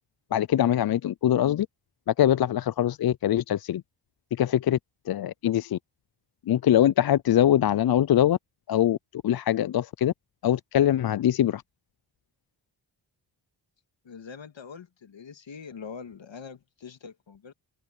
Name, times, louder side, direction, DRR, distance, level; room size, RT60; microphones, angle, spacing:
voice 1, 0.3-1.7 2.1-3.8 4.4-4.8 5.1-5.8 6.5-8.4 8.7-10.1 10.4-11.6, left 11 dB, 55° left, 0.5 m, -23 dB
voice 2, 14.0-17.5, left 6 dB, 75° left, 2.1 m, -43 dB
cardioid pair, 60°, 45 cm